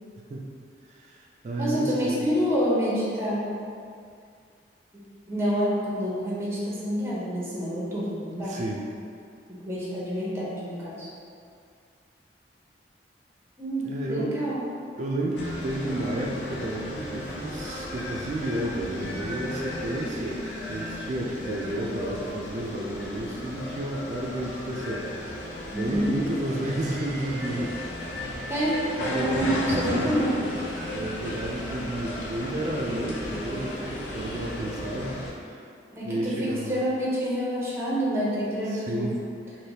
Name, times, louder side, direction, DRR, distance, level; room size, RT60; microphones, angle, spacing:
voice 1, 0.9-2.3 8.4-8.8 13.8-14.3 15.0-20.4 20.7-25.1 25.7-27.8 29.0-35.2 35.4-35.7 36.0-36.8 38.7-39.2, right 1 dB, 40° right, -2 dB, 0.3 m, -31 dB
voice 2, 1.6-3.5 4.9-8.6 9.5-11.1 13.6-14.6 25.7-26.1 28.5-30.3 35.9-39.1, equal, 15° right, -7 dB, 0.6 m, -28 dB
sound 1, 15.3-35.3, left 1 dB, 85° left, 0.5 m, -34 dB
3.3 x 2.6 x 2.7 m, 2.3 s
head